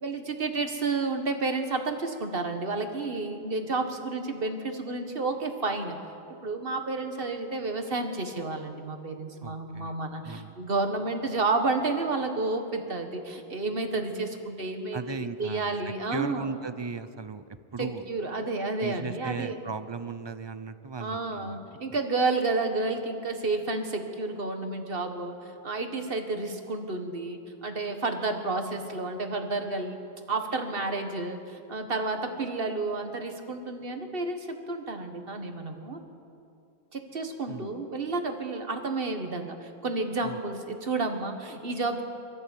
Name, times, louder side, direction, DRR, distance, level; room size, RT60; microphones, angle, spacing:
voice 1, 0.0-6.0 6.4-16.6 17.8-19.6 21.0-25.4 25.6-30.0 30.3-36.0 36.9-42.0, right 3 dB, 60° right, 6 dB, 1.8 m, -31 dB
voice 2, 9.4-9.9 10.2-10.5 14.9-18.1 18.8-21.8 37.5-37.7 40.2-40.4, right 4 dB, 30° right, 12 dB, 0.6 m, -37 dB
23.0 x 14.0 x 8.4 m, 2.6 s
omnidirectional pair, 1.1 m